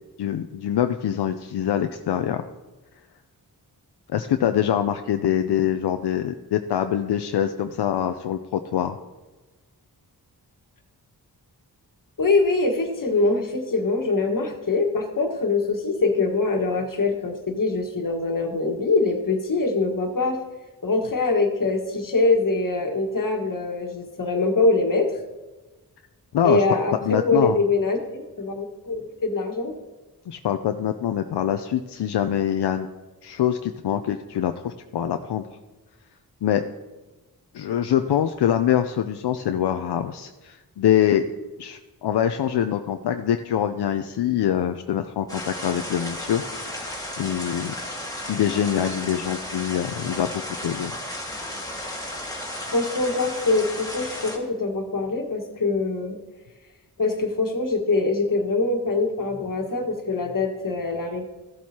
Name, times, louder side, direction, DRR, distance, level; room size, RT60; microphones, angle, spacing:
voice 1, 0.2-2.5 4.1-9.0 26.3-26.6 27.0-27.6 30.3-32.9 33.2-35.4 36.4-36.6 37.5-41.2 41.6-47.7 48.3-50.9, left 10 dB, 85° left, 7 dB, 0.5 m, -24 dB
voice 2, 12.2-20.4 20.8-25.1 26.4-29.7 52.7-56.2 57.0-61.2, left 3 dB, 55° left, 3 dB, 1.5 m, -23 dB
sound 1, 45.3-54.4, left 1 dB, 10° left, 1.8 m, -34 dB
14.5 x 7.5 x 2.8 m, 1.2 s
cardioid pair, 55°, 39 cm